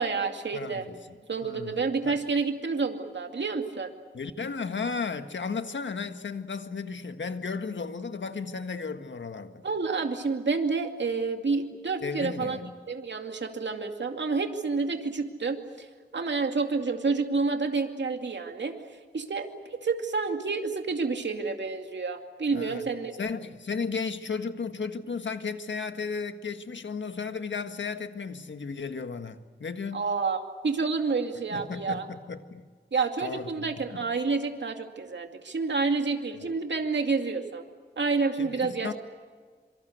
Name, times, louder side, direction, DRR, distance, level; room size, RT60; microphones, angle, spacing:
voice 1, 0.0-0.8 1.3-3.9 9.6-12.6 12.9-15.9 16.1-18.7 19.1-23.1 29.9-32.1 32.9-37.6 38.0-38.9, right 4 dB, 70° right, 2.5 m, -29 dB
voice 2, 0.5-2.2 4.1-9.6 12.0-12.7 22.5-22.9 23.2-30.1 31.5-32.6 33.2-34.0 38.4-38.9, left 5 dB, 80° left, 1.6 m, -34 dB
26.5 x 25.0 x 8.1 m
wide cardioid pair, 80°, 19 cm